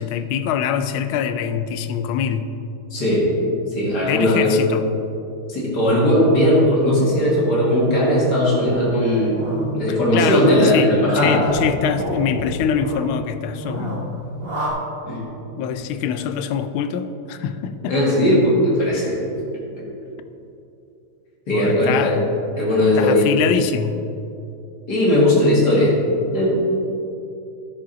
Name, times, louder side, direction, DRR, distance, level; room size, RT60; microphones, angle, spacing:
voice 1, 0.0-2.5 4.0-4.9 9.9-14.1 15.6-17.9 21.5-22.3 23.0-24.0, left 8 dB, 75° left, 10 dB, 1.3 m, -24 dB
voice 2, 2.9-3.3 3.7-4.5 5.5-9.4 9.7-11.5 15.1-15.3 17.9-19.2 21.5-22.2 22.6-23.3 24.9-25.9 26.3-26.6, left 1 dB, 50° left, -5 dB, 2.4 m, -18 dB
sound 1, 8.7-14.7, right 1 dB, 35° right, 1.1 m, -31 dB
12.0 x 6.5 x 3.9 m, 2.8 s
omnidirectional pair, 2.4 m